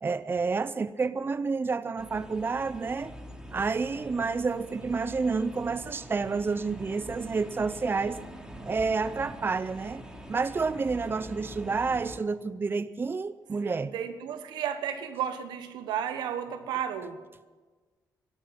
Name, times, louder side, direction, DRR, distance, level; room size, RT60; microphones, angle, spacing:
voice 1, 0.0-3.1 3.5-8.2 8.6-13.9, right 4 dB, 30° right, 14 dB, 0.6 m, -29 dB
sound 1, 2.0-12.2, equal, 10° right, 2.8 m, -45 dB
voice 2, 13.6-17.2, right 9 dB, 85° right, 9 dB, 1.3 m, -33 dB
12.5 x 12.0 x 8.8 m, 1.4 s
supercardioid pair, 65°, 7 cm